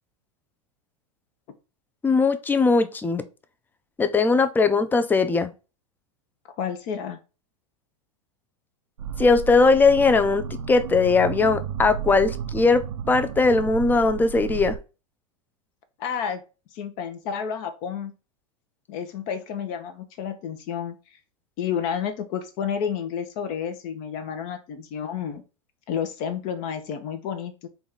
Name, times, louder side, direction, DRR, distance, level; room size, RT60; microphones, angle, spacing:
voice 1, 2.0-3.3 4.0-5.5 9.2-12.8 13.1-14.8, left 4 dB, 10° left, 0.4 m, -19 dB
voice 2, 6.6-7.2 16.0-16.4 16.7-18.1 18.9-21.0 21.6-25.4 25.9-27.7, left 8 dB, 50° left, 0.7 m, -30 dB
sound 1, 9.0-14.8, right 7 dB, 90° right, 0.5 m, -33 dB
3.9 x 2.4 x 3.6 m
hypercardioid pair, 110°, 17 cm